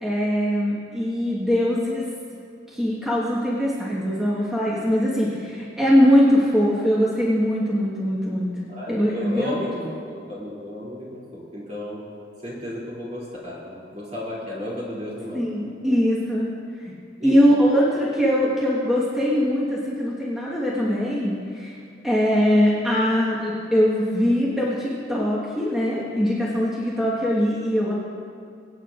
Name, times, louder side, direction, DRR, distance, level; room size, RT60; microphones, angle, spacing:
voice 1, 0.0-2.0 2.7-8.5 8.9-9.6 15.3-16.5 16.8-16.9 17.2-21.8 22.0-27.9, equal, ahead, -8 dB, 1.5 m, -21 dB
voice 2, 8.7-12.0 12.4-15.4 15.8-15.9 17.2-17.4, left 1 dB, 35° right, -6 dB, 3.0 m, -33 dB
23.5 x 9.0 x 2.5 m, 2.3 s
head